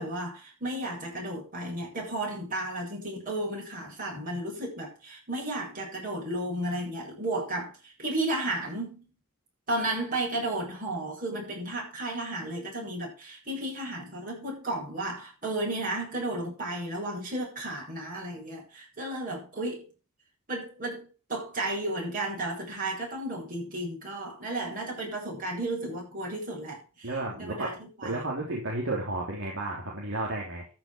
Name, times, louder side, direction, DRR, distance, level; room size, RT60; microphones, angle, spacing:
voice 1, 0.0-9.1 9.7-19.9 20.5-27.1 27.4-28.2, right 1 dB, 40° right, 8.0 m, -33 dB
voice 2, 27.0-27.7 28.0-30.7, right 2 dB, 60° right, 3.4 m, -32 dB
13.5 x 6.3 x 6.2 m
head